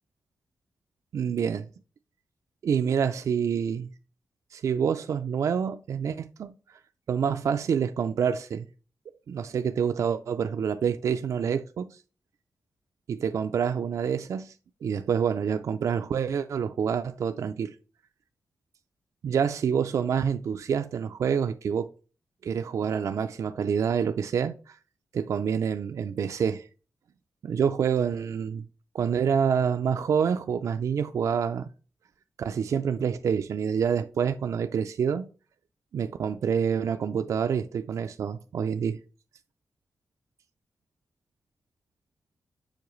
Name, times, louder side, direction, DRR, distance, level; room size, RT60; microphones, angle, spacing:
voice 1, 1.1-1.7 2.6-3.9 4.5-6.5 7.1-8.7 9.3-12.0 13.1-14.5 14.8-17.7 19.2-21.9 22.4-24.8 25.1-26.6 27.4-28.6 28.9-31.7 32.4-35.3 35.9-39.0, right 7 dB, 65° right, 0.3 m, -27 dB
7.1 x 4.6 x 3.1 m
wide cardioid pair, 165°, 6 cm